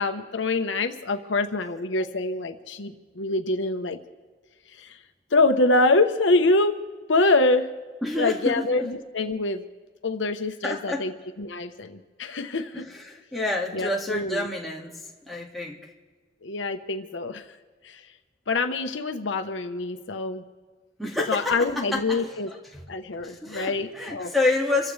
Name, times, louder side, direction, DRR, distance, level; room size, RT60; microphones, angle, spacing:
voice 1, 0.0-4.0 4.8-5.0 5.3-6.8 7.1-7.7 8.2-9.7 10.0-11.1 11.4-12.9 13.7-14.5 16.4-17.4 17.8-18.0 18.5-20.4 21.3-22.5 22.9-24.3, left 2 dB, 80° left, 7 dB, 1.0 m, -25 dB
voice 2, 8.0-8.7 10.6-11.1 13.1-14.9 15.3-15.8 21.0-22.2 22.7-22.8 23.2-24.9, left 2 dB, ahead, -3 dB, 1.9 m, -28 dB
27.0 x 15.0 x 3.3 m, 1.5 s
head